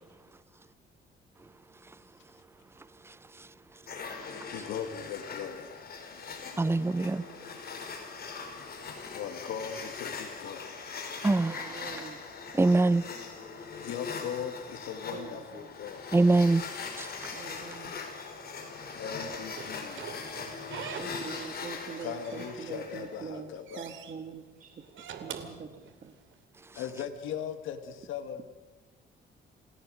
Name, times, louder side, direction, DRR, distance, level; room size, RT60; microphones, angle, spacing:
sound 1, 3.9-23.2, left 5 dB, 50° left, 4.5 m, -41 dB
voice 1, 4.5-5.8 9.1-10.7 13.8-16.1 18.9-20.8 22.0-23.9 26.8-28.4, left 8 dB, 90° left, 7 dB, 2.2 m, -39 dB
voice 2, 6.6-7.2 11.2-11.7 12.5-13.0 16.1-16.6 17.0-17.3, right 2 dB, 10° right, 18 dB, 0.7 m, -23 dB
voice 3, 7.1-7.6 11.4-12.2 15.1-15.7 17.3-18.0 21.0-23.5 23.8-24.7 25.2-25.7 26.0-26.1, right 5 dB, 45° right, 7 dB, 2.0 m, -44 dB
Slam / Squeak, 19.6-21.6 21.9-22.9 23.2-24.1 24.8-26.3, right 8 dB, 75° right, 2.6 m, -44 dB
28.0 x 16.5 x 6.5 m, 1.2 s
cardioid pair, 90°, 20 cm